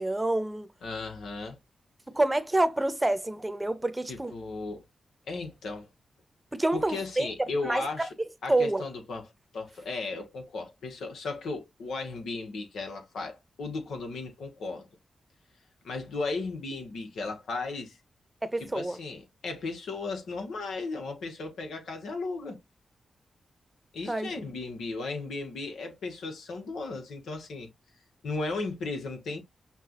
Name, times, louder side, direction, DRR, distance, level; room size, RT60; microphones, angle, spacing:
voice 1, 0.0-0.7 2.1-4.3 6.5-7.3 7.6-8.1 8.5-8.8 18.4-19.0 24.1-24.3, right 2 dB, 20° right, 0.8 m, -27 dB
voice 2, 0.8-1.6 4.1-4.8 5.3-5.9 6.7-8.1 8.4-9.2 9.5-14.9 15.8-18.0 18.6-22.6 23.9-27.7 28.2-29.4, left 3 dB, 85° left, 1.1 m, -35 dB
5.8 x 2.3 x 2.9 m
cardioid pair, 50°, 0 cm